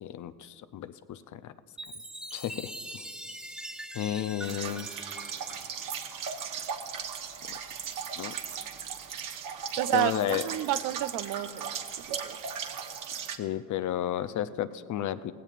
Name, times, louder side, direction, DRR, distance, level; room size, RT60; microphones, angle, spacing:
voice 1, 0.0-1.5 2.3-2.7 3.9-4.9 7.5-7.6 8.2-8.4 9.9-10.4 13.4-15.3, left 11 dB, 55° left, 13 dB, 0.6 m, -32 dB
Chime, 1.8-6.5, right 1 dB, 5° right, 1.3 m, -43 dB
sound 1, 4.4-13.4, right 7 dB, 60° right, 1.1 m, -37 dB
voice 2, 9.8-11.7 12.2-12.4, right 14 dB, 75° right, 14 dB, 0.6 m, -30 dB
18.0 x 16.0 x 2.5 m, 2.1 s
supercardioid pair, 75°, 36 cm